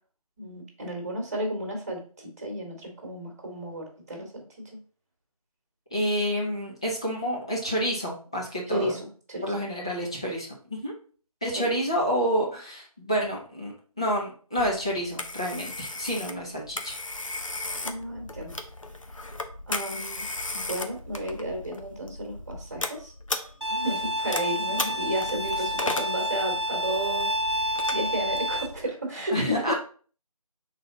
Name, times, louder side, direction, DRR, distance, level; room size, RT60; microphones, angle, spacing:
voice 1, 0.4-4.8 8.7-9.5 11.5-11.7 17.8-18.5 19.7-20.2 20.5-23.1 23.7-29.7, right 1 dB, 25° right, 2 dB, 1.7 m, -33 dB
voice 2, 5.9-9.0 9.4-10.9 11.4-17.0 24.7-24.9 29.3-29.7, equal, 10° left, -4 dB, 0.6 m, -29 dB
Telephone, 14.6-28.8, left 2 dB, 60° left, 1.0 m, -36 dB
Bowed string instrument, 23.6-28.7, equal, 45° right, 0.7 m, -29 dB
6.4 x 4.1 x 3.9 m, 0.41 s
figure-of-eight pair, 165°, 19 cm